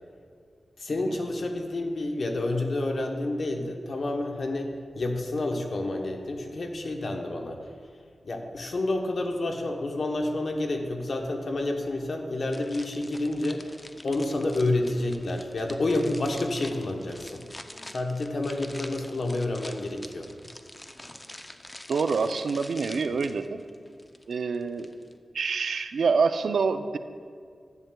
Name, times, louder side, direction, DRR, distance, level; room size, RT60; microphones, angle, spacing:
voice 1, 0.8-4.7 4.9-7.6 8.2-13.7 14.0-17.4 17.9-20.3, left 2 dB, 60° left, 3 dB, 0.9 m, -29 dB
sound 1, 12.5-25.2, left 1 dB, 20° left, 0.5 m, -46 dB
voice 2, 21.9-23.6 24.3-24.9 25.3-27.0, right 5 dB, 85° right, 9 dB, 0.4 m, -26 dB
10.5 x 8.8 x 2.2 m, 2.1 s
wide cardioid pair, 85°, 0 cm